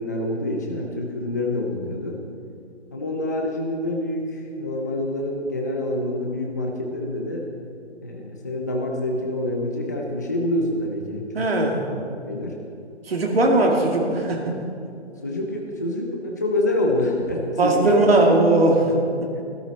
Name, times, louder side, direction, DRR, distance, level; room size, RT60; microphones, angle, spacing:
voice 1, 0.0-2.2 2.9-7.4 8.0-11.8 12.3-12.6 15.2-18.0 19.4-19.5, left 1 dB, 15° left, 0 dB, 0.5 m, -26 dB
voice 2, 11.3-11.9 13.1-14.6 17.6-19.3, right 2 dB, 60° right, 1 dB, 2.5 m, -19 dB
15.5 x 13.0 x 4.1 m, 2.5 s
hypercardioid pair, 160°, 35 cm